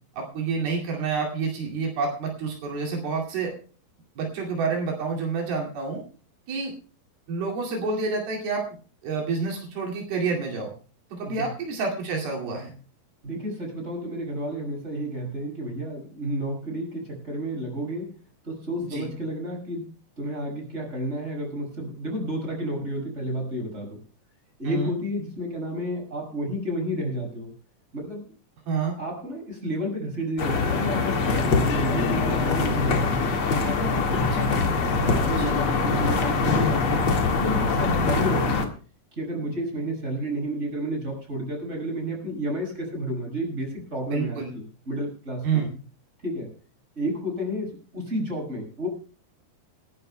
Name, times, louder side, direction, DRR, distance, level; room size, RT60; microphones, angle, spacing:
voice 1, 0.2-3.5 4.2-6.0 6.5-6.7 7.3-8.6 9.0-10.7 11.1-12.7 18.8-19.1 24.6-24.9 28.7-28.9 34.4-34.5 35.3-35.5 44.1-44.5 45.4-45.7, right 4 dB, 85° right, -1 dB, 4.3 m, -28 dB
voice 2, 13.2-18.1 18.4-19.9 20.2-24.0 24.6-27.5 27.9-28.3 29.0-33.3 33.6-34.5 35.0-38.7 39.2-45.6 46.2-46.5 47.0-48.9, equal, 15° right, 1 dB, 6.2 m, -31 dB
sound 1, 30.4-38.6, left 4 dB, 45° left, 2.2 m, -23 dB
27.5 x 11.0 x 2.2 m, 0.38 s
omnidirectional pair, 4.2 m